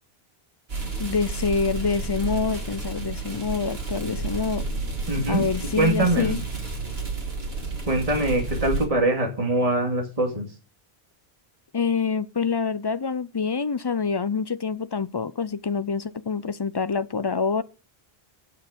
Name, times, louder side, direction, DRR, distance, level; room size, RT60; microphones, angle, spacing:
sound 1, 0.7-8.9, right 3 dB, 75° right, 2.7 m, -31 dB
voice 1, 1.0-4.6 5.3-6.4 11.7-17.6, left 5 dB, 35° left, 0.4 m, -26 dB
voice 2, 5.1-5.4 5.8-6.4 7.9-10.5, right 1 dB, 35° right, 2.5 m, -23 dB
9.5 x 6.6 x 5.2 m
omnidirectional pair, 1.0 m